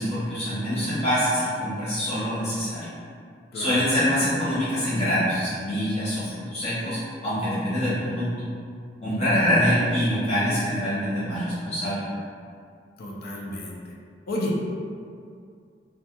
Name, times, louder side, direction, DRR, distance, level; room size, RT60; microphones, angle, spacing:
voice 1, 0.0-2.9 3.5-8.5 9.0-12.0, equal, 35° left, -12 dB, 0.9 m, -25 dB
voice 2, 9.1-9.7 13.0-13.8 14.3-14.6, left 1 dB, 55° left, -2 dB, 0.4 m, -31 dB
2.4 x 2.2 x 2.8 m, 2.3 s
head